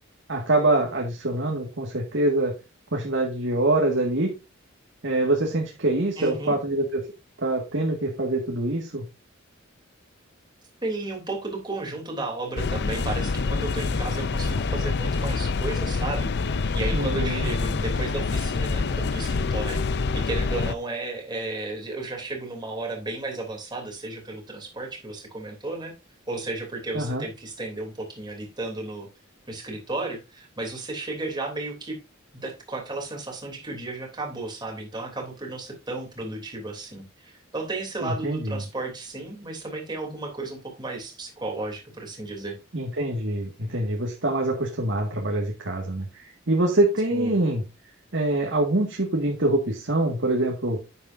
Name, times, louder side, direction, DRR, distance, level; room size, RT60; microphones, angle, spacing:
voice 1, 0.3-2.5 2.9-4.3 5.0-7.0 7.4-9.1 16.9-17.5 26.9-27.2 38.0-38.6 42.7-47.6 48.1-50.8, right 2 dB, 60° right, 0 dB, 1.9 m, -25 dB
voice 2, 6.2-6.5 10.8-25.9 26.3-29.1 29.5-32.0 32.3-42.6 47.1-47.4, right 2 dB, 20° right, 1 dB, 3.0 m, -33 dB
sound 1, 12.6-20.8, left 4 dB, 55° left, 0.5 m, -26 dB
9.9 x 8.6 x 2.6 m, 0.27 s
head